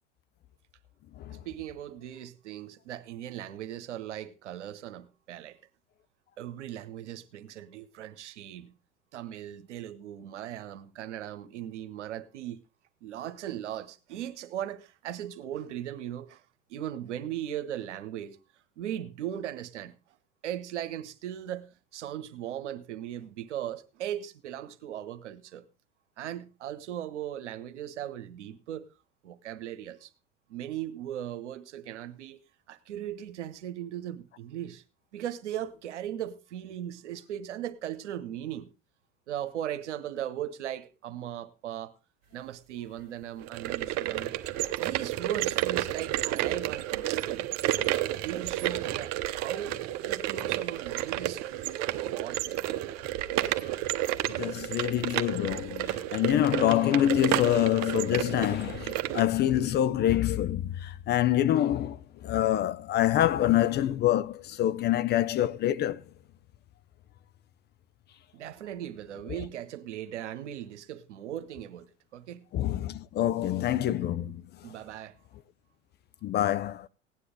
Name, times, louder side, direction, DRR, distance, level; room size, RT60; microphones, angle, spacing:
voice 1, 1.3-5.6 6.4-8.7 9.1-12.6 13.0-16.4 16.7-18.4 18.8-19.9 20.4-25.6 26.2-28.8 29.2-30.1 30.5-32.4 32.7-34.8 35.1-38.7 39.3-41.9 42.3-44.3 44.8-47.5 48.2-49.8 50.0-52.4 68.3-71.9 72.1-72.4 74.3-74.4 74.6-75.1, right 11 dB, 70° right, 1.2 m, -38 dB
sound 1, 43.4-59.2, right 14 dB, 45° right, 1.0 m, -31 dB
voice 2, 54.4-66.0 69.3-69.4 72.5-74.7 76.2-76.9, left 12 dB, 30° left, 0.5 m, -26 dB
17.0 x 9.8 x 3.8 m
figure-of-eight pair, 75°, 37 cm